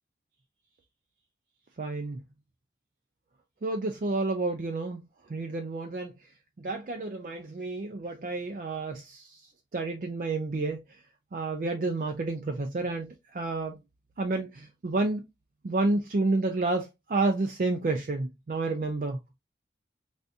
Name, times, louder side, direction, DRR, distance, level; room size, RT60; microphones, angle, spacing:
voice 1, 1.8-2.2 3.6-5.0 5.3-6.1 6.6-9.4 9.7-10.8 11.3-13.8 14.2-15.3 15.6-19.4, right 3 dB, 50° right, 0.4 m, -30 dB
3.4 x 2.6 x 2.6 m
head